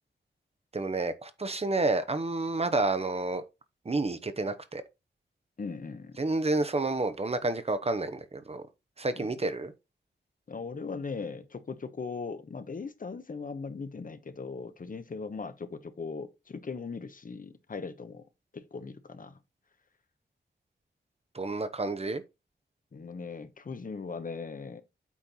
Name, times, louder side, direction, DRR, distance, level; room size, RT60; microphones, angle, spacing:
voice 1, 0.7-3.4 3.8-4.8 6.2-8.6 9.0-9.7 21.3-22.2, right 2 dB, 35° right, 0.9 m, -30 dB
voice 2, 5.6-6.2 9.2-9.3 10.5-18.2 18.5-19.4 22.9-24.8, left 4 dB, 45° left, 1.0 m, -39 dB
8.5 x 4.5 x 4.2 m
wide cardioid pair, 110°, 19 cm